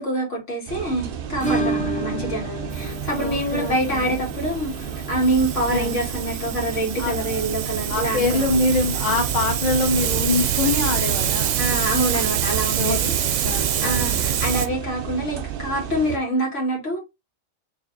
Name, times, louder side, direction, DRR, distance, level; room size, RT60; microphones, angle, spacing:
voice 1, 0.0-8.6 11.6-13.1 13.8-17.0, right 1 dB, 80° left, 2.1 m, -26 dB
sound 1, 0.7-16.2, right 9 dB, 60° right, 0.6 m, -33 dB
Acoustic guitar / Strum, 1.4-10.0 10.3-10.4 10.6-10.7 11.1-11.2 13.3-13.4 14.5-14.6, right 2 dB, 5° left, 0.9 m, -33 dB
voice 2, 1.5-1.9 3.2-4.2 5.7-6.0 7.0-7.4 7.9-11.6 12.8-14.2, left 3 dB, 40° left, 0.9 m, -25 dB
Hiss, 2.7-14.7, right 9 dB, 85° right, 0.9 m, -26 dB
3.4 x 2.7 x 4.0 m
omnidirectional pair, 1.3 m